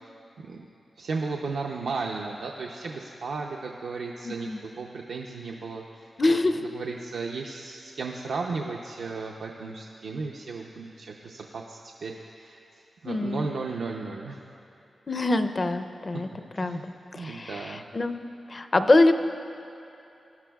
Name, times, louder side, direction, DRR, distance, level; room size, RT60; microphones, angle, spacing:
voice 1, 1.0-14.4 16.5-16.9 17.1-17.8, right 4 dB, 90° right, -1 dB, 0.6 m, -35 dB
voice 2, 4.2-4.6 6.2-6.6 13.0-13.5 15.1-16.3 16.6-16.8 17.1-18.2 18.5-19.1, left 2 dB, 35° left, 10 dB, 0.5 m, -24 dB
19.5 x 11.5 x 2.3 m, 2.7 s
wide cardioid pair, 100°, 0 cm